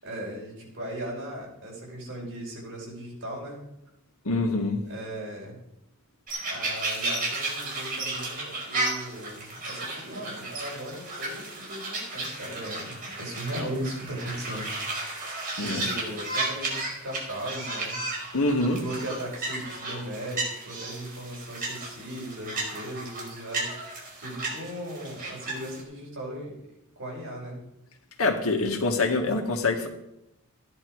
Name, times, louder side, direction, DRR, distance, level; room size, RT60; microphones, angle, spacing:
voice 1, 0.0-3.7 4.9-5.6 6.4-14.7 15.5-18.0 18.7-26.6 27.0-27.6, right 1 dB, 60° right, -2 dB, 5.4 m, -37 dB
voice 2, 4.2-4.8 15.6-15.9 18.3-18.8 28.2-29.9, left 2 dB, 80° left, 3 dB, 1.9 m, -25 dB
sound 1, 6.3-25.8, right 2 dB, 40° right, 4.8 m, -34 dB
14.5 x 10.5 x 4.8 m, 0.84 s
head